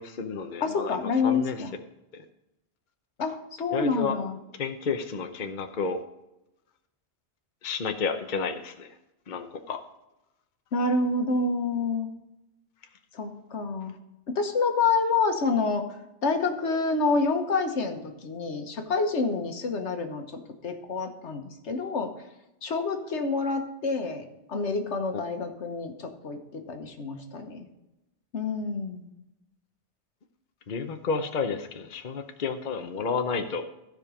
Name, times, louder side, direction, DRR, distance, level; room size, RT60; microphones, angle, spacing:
voice 1, 0.0-1.0 1.2-1.6 3.7-4.1 4.6-6.0 7.6-8.9 9.3-9.8 30.7-33.6, left 5 dB, 45° left, 6 dB, 0.9 m, -31 dB
voice 2, 0.6-1.7 3.2-4.4 10.7-12.1 13.1-13.9 14.3-15.8 16.2-20.2 20.6-22.1 22.6-27.7 28.3-29.1, left 4 dB, 80° left, 5 dB, 1.5 m, -28 dB
15.5 x 5.2 x 4.9 m, 0.94 s
omnidirectional pair, 1.2 m